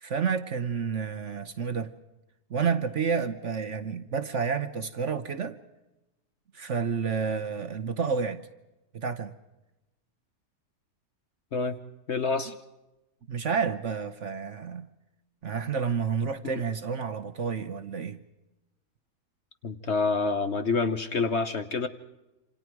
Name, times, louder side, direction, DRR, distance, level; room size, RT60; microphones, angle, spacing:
voice 1, 0.0-1.9 2.5-5.6 6.5-8.4 8.9-9.3 13.3-14.9 15.4-18.2, right 6 dB, 50° right, 1.1 m, -30 dB
voice 2, 12.1-12.5 16.4-16.6 19.6-21.9, left 4 dB, 45° left, 1.1 m, -27 dB
27.5 x 26.5 x 4.6 m
omnidirectional pair, 1.8 m